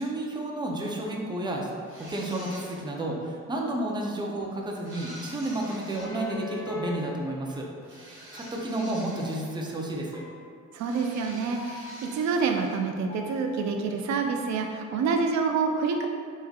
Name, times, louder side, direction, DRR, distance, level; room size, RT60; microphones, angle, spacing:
voice 1, 0.0-1.7 2.0-10.2, right 1 dB, 15° right, -1 dB, 0.5 m, -31 dB
sound 1, 1.8-3.0 4.8-6.2 7.8-9.9 10.8-12.9, right 1 dB, 40° right, 1.0 m, -47 dB
sound 2, 5.9-8.1 10.1-10.7 11.6-12.5 13.1-13.9, left 4 dB, 60° left, 0.6 m, -42 dB
voice 2, 10.7-16.1, right 5 dB, 65° right, 3 dB, 0.5 m, -27 dB
3.6 x 3.1 x 2.3 m, 2.2 s
cardioid pair, 90°, 30 cm